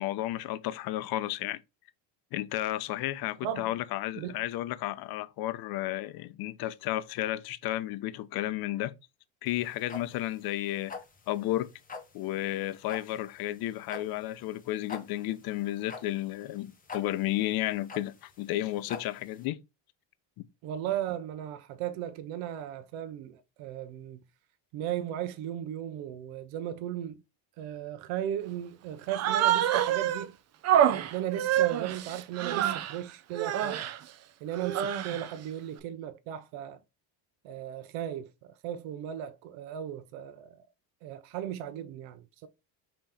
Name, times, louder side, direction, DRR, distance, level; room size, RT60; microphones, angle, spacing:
voice 1, 0.0-1.6 2.3-8.9 9.4-10.9 11.3-11.7 12.1-19.6, left 15 dB, 55° left, 0.5 m, -32 dB
sound 1, 9.5-19.4, left 4 dB, 20° left, 0.8 m, -45 dB
voice 2, 20.6-24.2 24.7-27.2 27.6-30.3 30.9-33.9 34.4-36.8 37.4-40.6 41.0-42.5, right 11 dB, 80° right, 0.7 m, -36 dB
Human voice, 29.1-30.3 30.6-33.0 33.3-34.0 34.5-35.3, right 10 dB, 35° right, 0.4 m, -27 dB
5.2 x 3.0 x 3.4 m
cardioid pair, 150°, 46 cm